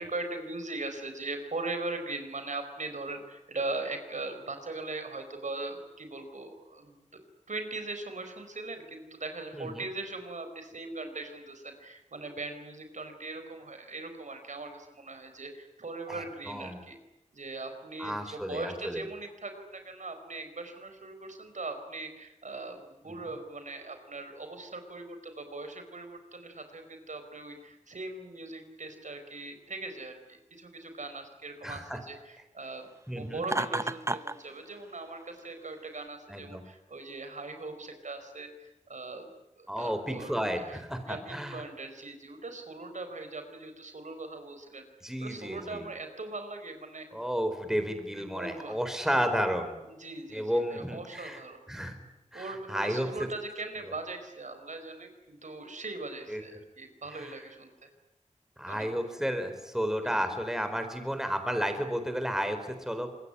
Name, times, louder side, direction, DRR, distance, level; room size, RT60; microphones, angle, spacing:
voice 1, 0.0-7.2 7.5-17.0 17.3-32.9 33.2-39.3 39.6-40.8 41.1-44.8 45.2-47.1 48.2-48.8 49.8-51.6 52.3-57.9 58.6-58.9 60.0-60.2, right 2 dB, 75° right, 7 dB, 4.6 m, -40 dB
voice 2, 16.1-16.8 18.0-19.0 31.6-32.0 33.1-33.4 36.3-36.6 39.7-41.6 45.0-45.8 47.1-49.8 50.3-51.4 51.7-52.0 52.3-53.1 56.3-56.4 57.2-57.3 58.6-63.1, equal, 5° right, 7 dB, 4.4 m, -32 dB
Laughter, 33.4-34.4, right 2 dB, 20° right, 0.9 m, -30 dB
25.5 x 21.5 x 9.8 m, 0.93 s
wide cardioid pair, 80°, 13 cm